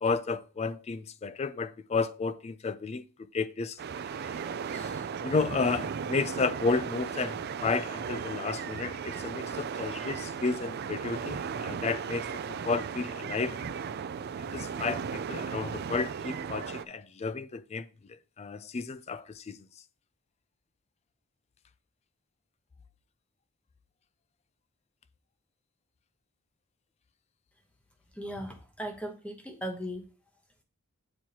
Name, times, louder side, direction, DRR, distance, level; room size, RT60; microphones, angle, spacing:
voice 1, 0.0-3.0 3.3-3.8 4.7-4.9 5.2-13.7 14.5-17.8 18.4-19.6, left 4 dB, 30° left, 0.3 m, -32 dB
sound 1, 3.8-16.8, right 6 dB, 50° right, 0.3 m, -36 dB
voice 2, 28.1-30.1, equal, 5° left, 1.0 m, -37 dB
8.5 x 4.5 x 2.9 m
head